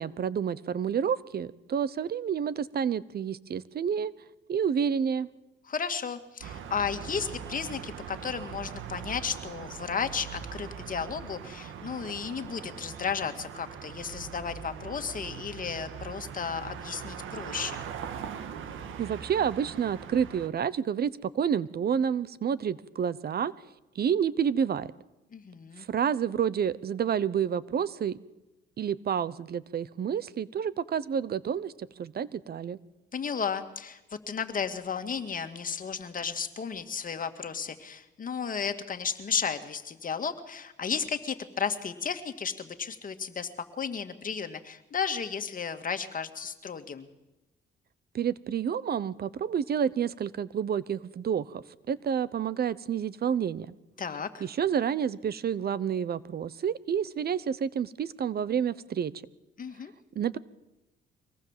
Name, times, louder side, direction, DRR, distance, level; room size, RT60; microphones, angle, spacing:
voice 1, 0.0-4.1 4.5-5.3 19.0-23.5 23.9-24.9 25.8-28.2 28.8-32.8 48.1-53.7 54.4-59.1 60.1-60.4, right 8 dB, 50° right, 19 dB, 0.9 m, -29 dB
voice 2, 5.7-17.8 25.3-25.9 33.1-43.5 43.8-47.1 54.0-54.5 59.6-59.9, left 6 dB, 45° left, 8 dB, 2.2 m, -34 dB
sound 1, 6.4-20.5, right 8 dB, 80° right, 1.9 m, -41 dB
24.5 x 18.5 x 7.5 m, 0.98 s
cardioid pair, 90°, 20 cm